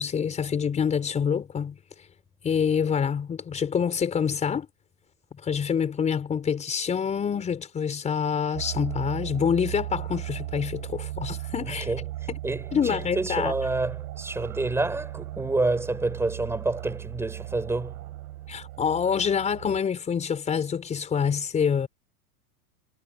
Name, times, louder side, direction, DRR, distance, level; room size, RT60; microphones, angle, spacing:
voice 1, 0.0-2.1 2.4-4.7 5.4-11.9 12.3-12.4 12.7-13.5 18.5-21.9, left 7 dB, 15° left, 5.1 m, -26 dB
sound 1, 8.5-19.8, right 15 dB, 70° right, 6.9 m, -37 dB
voice 2, 12.4-18.0, right 2 dB, 5° right, 3.9 m, -28 dB
supercardioid pair, 165°, 44 cm